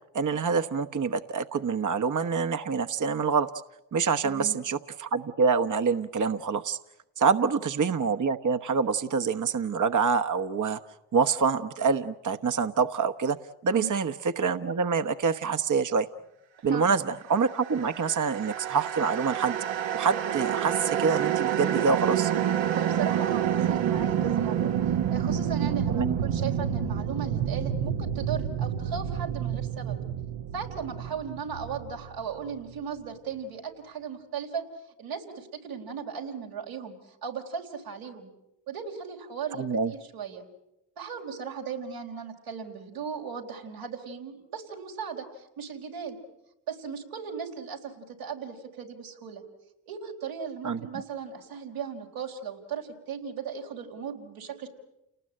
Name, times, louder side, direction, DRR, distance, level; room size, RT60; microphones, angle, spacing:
voice 1, 0.1-3.5 3.9-6.8 7.2-10.8 11.1-13.4 13.6-16.1 16.6-19.6 19.9-22.3 25.9-26.2 39.5-39.9 50.6-50.8, right 5 dB, 40° right, 8 dB, 1.1 m, -26 dB
voice 2, 4.2-4.5 7.4-7.5 13.7-13.9 16.7-16.9 22.7-24.7 25.1-30.0 30.5-34.6 35.0-38.3 38.7-40.4 41.0-46.2 46.7-49.4 49.9-54.7, right 6 dB, 85° right, -1 dB, 4.1 m, -37 dB
sound 1, 17.6-32.8, right 9 dB, 65° right, 1.3 m, -28 dB
29.5 x 19.5 x 8.8 m, 0.90 s
hypercardioid pair, 40°, 48 cm